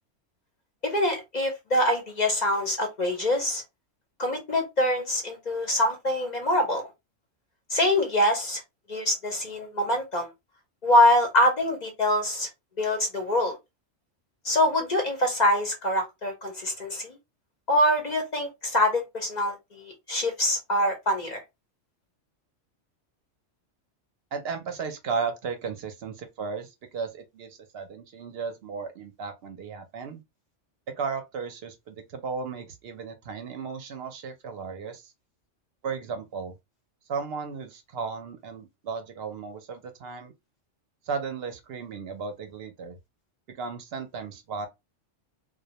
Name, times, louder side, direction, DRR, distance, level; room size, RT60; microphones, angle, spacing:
voice 1, 0.8-3.6 4.2-6.8 7.7-8.6 8.9-10.3 10.8-12.5 12.8-13.6 14.4-17.2 17.7-19.6 19.8-21.4, left 1 dB, 45° left, 0.6 m, -24 dB
voice 2, 24.3-30.2 31.0-35.1 35.8-36.5 37.1-40.3 41.1-43.0 43.5-44.7, right 5 dB, 65° right, 0.7 m, -35 dB
2.2 x 2.1 x 2.8 m
omnidirectional pair, 1.3 m